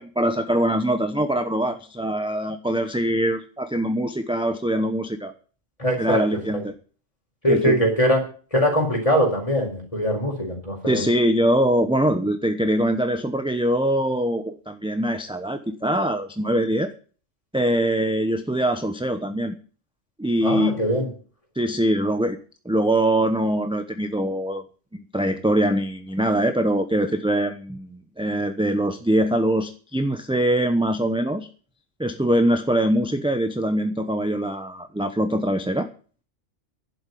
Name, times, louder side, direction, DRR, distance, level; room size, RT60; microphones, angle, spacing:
voice 1, 0.2-5.3 6.0-6.7 7.5-7.8 10.9-16.9 17.5-19.5 20.2-20.8 21.5-22.4 22.6-24.6 25.1-31.5 32.0-35.9, right 1 dB, 5° right, 7 dB, 0.8 m, -23 dB
voice 2, 5.8-6.2 7.4-8.2 8.5-11.0 20.4-21.1, equal, 25° left, 1 dB, 5.0 m, -21 dB
11.5 x 8.0 x 9.4 m, 0.40 s
omnidirectional pair, 1.3 m